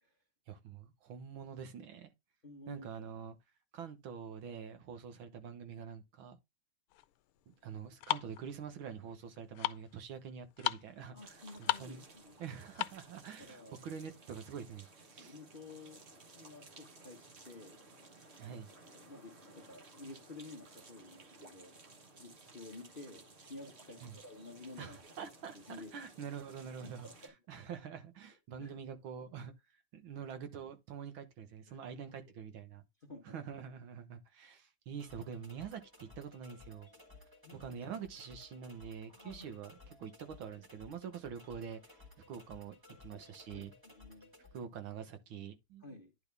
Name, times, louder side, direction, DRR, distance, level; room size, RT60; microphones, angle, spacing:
voice 1, 0.5-2.1 2.7-3.4 3.7-6.4 7.6-12.1 12.4-15.3 18.4-18.7 24.0-24.2 24.8-25.6 25.9-27.1 27.5-29.5 29.9-32.8 33.2-36.9 37.5-42.0 42.3-43.7 44.5-45.8, right 7 dB, 70° right, 1.8 m, -46 dB
voice 2, 2.4-3.0 11.1-12.4 13.4-13.8 15.2-16.0 16.3-17.8 18.5-18.6 18.9-21.7 22.2-25.0 25.7-25.9 26.8-27.3 28.6-28.7 31.7-31.8 33.0-33.3 37.4-37.7 39.1-39.6 42.9-44.3 45.8-46.1, left 2 dB, 30° left, 1.1 m, -52 dB
sound 1, 6.9-13.2, left 16 dB, 80° left, 1.5 m, -38 dB
sound 2, 11.2-27.3, right 3 dB, 35° right, 1.3 m, -57 dB
sound 3, 35.0-44.6, left 3 dB, 15° right, 1.1 m, -58 dB
10.5 x 4.0 x 3.4 m
omnidirectional pair, 2.4 m